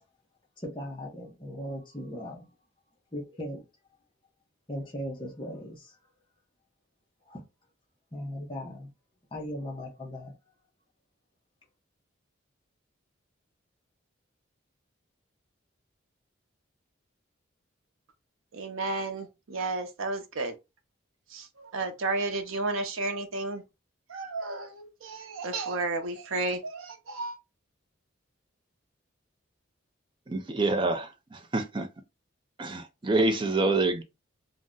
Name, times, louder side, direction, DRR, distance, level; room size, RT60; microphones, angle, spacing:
voice 1, 0.6-2.5 3.1-3.6 4.7-6.0 7.3-7.4 8.1-8.9 9.3-10.3, equal, 25° left, 0.7 m, -38 dB
voice 2, 18.5-20.5 21.3-23.6 24.1-27.4, right 3 dB, 90° right, 0.6 m, -32 dB
voice 3, 30.3-31.9 32.6-34.0, right 2 dB, 25° right, 0.4 m, -27 dB
2.6 x 2.1 x 3.6 m
head